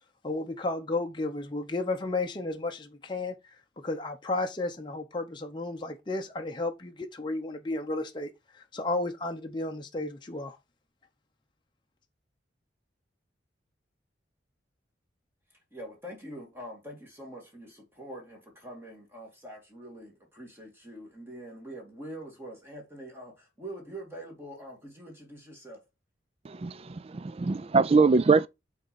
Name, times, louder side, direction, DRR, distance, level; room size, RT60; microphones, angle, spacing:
voice 1, 0.2-3.4 3.8-10.6, left 2 dB, 25° left, 0.7 m, -33 dB
voice 2, 15.7-25.8, right 1 dB, 15° right, 2.2 m, -44 dB
voice 3, 26.4-28.5, right 4 dB, 35° right, 0.4 m, -23 dB
6.5 x 4.2 x 5.2 m
head